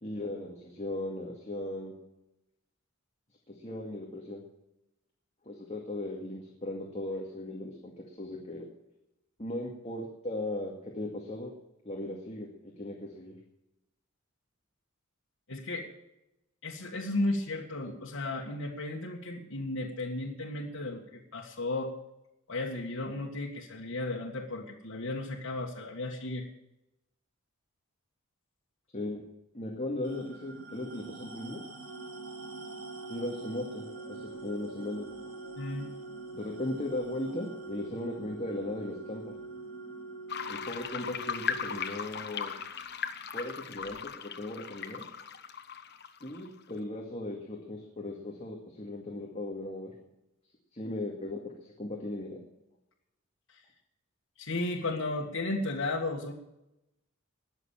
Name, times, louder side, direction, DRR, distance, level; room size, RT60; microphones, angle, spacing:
voice 1, 0.0-1.9 3.5-4.4 5.5-8.7 9.4-11.5 11.8-13.4 28.9-29.2 29.5-31.6 33.1-35.0 36.3-39.2 40.5-42.5 43.3-45.0 46.2-49.9 50.7-52.4, left 1 dB, 30° left, 0 dB, 2.1 m, -37 dB
voice 2, 15.5-15.9 16.6-21.9 22.5-26.5 35.6-35.9 53.5-53.6 54.4-56.3, left 2 dB, 80° left, -2 dB, 1.8 m, -34 dB
sound 1, 30.0-44.9, right 3 dB, 75° right, 3.5 m, -50 dB
Organ, 31.8-42.7 43.8-44.0, right 3 dB, 15° left, 5.9 m, -45 dB
sound 2, 40.3-46.7, left 7 dB, 55° left, 1.2 m, -38 dB
20.5 x 7.1 x 7.3 m, 0.88 s
head